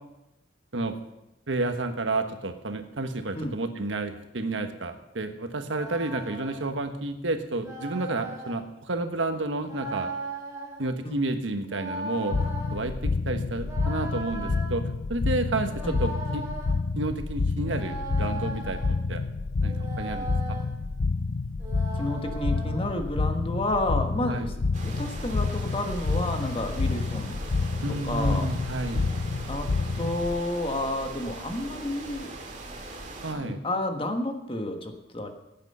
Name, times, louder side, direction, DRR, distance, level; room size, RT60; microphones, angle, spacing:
voice 1, 1.5-10.1 10.8-12.4 12.7-14.8 15.1-16.4 17.0-19.2 19.6-20.6 24.2-24.5 27.8-29.1 33.2-33.6, right 2 dB, 90° right, 7 dB, 1.3 m, -31 dB
sound 1, 5.6-6.7 7.6-8.6 9.6-10.8 11.6-12.8 13.6-14.7 15.6-16.7 17.6-19.0 19.6-20.7 21.6-23.0, right 1 dB, 15° right, 3.5 m, -38 dB
sound 2, 12.3-30.4, left 3 dB, 70° left, 0.6 m, -29 dB
voice 2, 21.9-24.5 24.8-27.3 28.0-28.5 29.5-29.7 29.9-32.3 33.3-35.3, left 1 dB, 30° left, 5 dB, 1.4 m, -30 dB
sound 3, 24.7-33.3, right 2 dB, 40° right, 2.1 m, -41 dB
16.5 x 9.1 x 5.6 m, 0.93 s
head